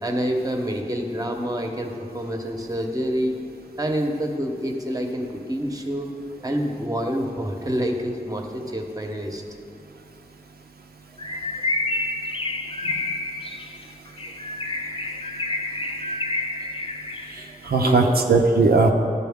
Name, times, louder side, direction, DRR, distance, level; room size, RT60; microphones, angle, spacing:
voice 1, 0.0-3.4 3.8-6.1 6.4-9.4 17.3-18.2, equal, 20° right, 3 dB, 0.9 m, -27 dB
Bird, 11.2-17.5, left 2 dB, 35° left, 0.5 m, -29 dB
voice 2, 17.3-18.9, right 3 dB, 80° right, 1 dB, 0.5 m, -19 dB
12.0 x 4.2 x 3.5 m, 2.4 s
cardioid pair, 40°, 16 cm